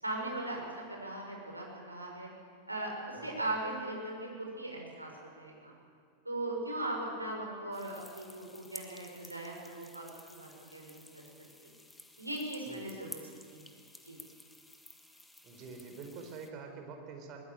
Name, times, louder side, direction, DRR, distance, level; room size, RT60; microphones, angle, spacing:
voice 1, 0.0-2.3 2.7-5.1 5.4-5.7 6.2-11.7 12.2-13.2 13.5-13.7 14.0-14.2, right 1 dB, 85° right, 0 dB, 5.9 m, -39 dB
sound 1, 7.7-16.5, left 1 dB, 5° left, 1.9 m, -53 dB
voice 2, 12.7-13.0 15.4-17.4, right 4 dB, 35° right, 4 dB, 4.4 m, -46 dB
22.5 x 20.0 x 9.1 m, 2.1 s
figure-of-eight pair, 90°, 0 cm